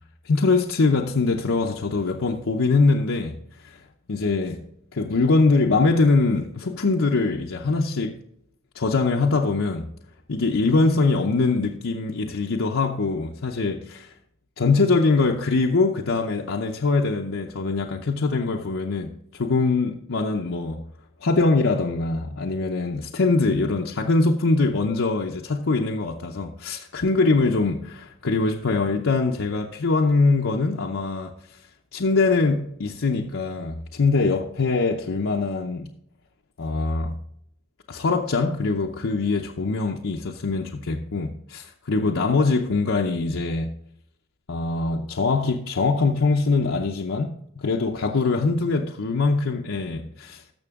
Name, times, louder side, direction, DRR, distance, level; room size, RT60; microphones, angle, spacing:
voice 1, 0.2-3.4 3.6-3.8 4.1-4.6 4.9-8.2 8.7-9.9 10.3-14.1 14.6-20.8 21.2-31.3 31.9-35.9 36.6-37.2 37.9-43.7 44.5-50.4, left 3 dB, 85° left, 0.7 m, -23 dB
13.5 x 6.0 x 3.6 m
head